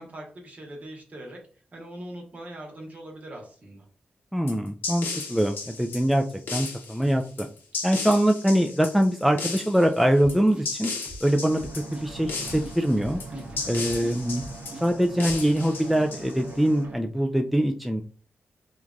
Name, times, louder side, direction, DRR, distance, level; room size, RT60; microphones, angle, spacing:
voice 1, 0.0-1.4 1.7-3.9 13.3-13.8, right 1 dB, 45° right, 0 dB, 1.1 m, -41 dB
voice 2, 4.3-6.2 6.5-7.5 7.8-10.9 11.2-13.2 13.7-14.4 14.8-18.0, equal, ahead, 4 dB, 0.4 m, -23 dB
sound 1, 4.5-16.7, left 4 dB, 80° left, 0.9 m, -35 dB
sound 2, 10.2-15.6, right 1 dB, 30° right, 0.8 m, -43 dB
sound 3, 11.4-17.0, right 3 dB, 65° right, 0.6 m, -41 dB
3.1 x 2.5 x 2.3 m, 0.41 s
cardioid pair, 55°, 3 cm